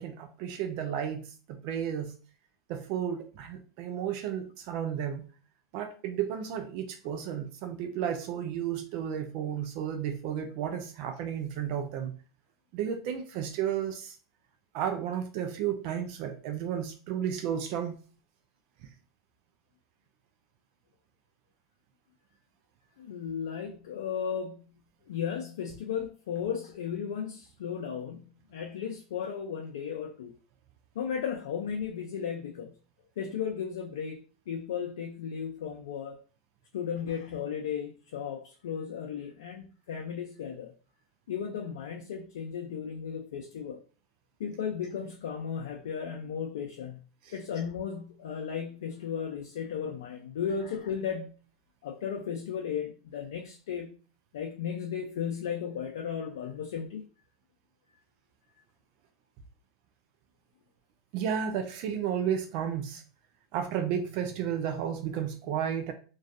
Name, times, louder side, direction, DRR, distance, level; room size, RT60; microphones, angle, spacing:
voice 1, 0.0-2.1 2.7-5.3 5.7-12.1 12.7-14.2 14.7-18.0 47.2-47.3 61.1-63.0 63.5-65.9, right 8 dB, 55° right, 0.3 m, -33 dB
voice 2, 23.0-24.8 25.1-30.3 31.0-32.8 33.2-36.2 36.7-40.7 41.3-43.8 44.4-47.0 47.3-51.4 51.8-54.0 54.3-57.0, left 7 dB, 80° left, 0.4 m, -35 dB
2.4 x 2.3 x 2.5 m
hypercardioid pair, 105°, 2 cm